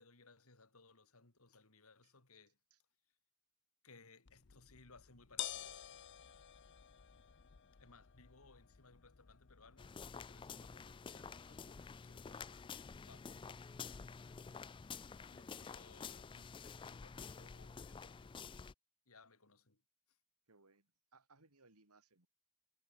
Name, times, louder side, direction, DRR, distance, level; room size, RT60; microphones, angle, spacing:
voice 1, 0.0-2.6 3.8-5.8 7.8-13.5 15.2-18.4 19.1-19.8 20.1-20.2, left 3 dB, 75° left, 3.3 m, -64 dB
sound 1, 4.3-14.3, left 11 dB, 55° left, 0.7 m, -53 dB
sound 2, 9.8-18.7, left 5 dB, 20° left, 0.3 m, -50 dB
voice 2, 20.5-22.3, right 3 dB, 85° right, 3.6 m, -68 dB
head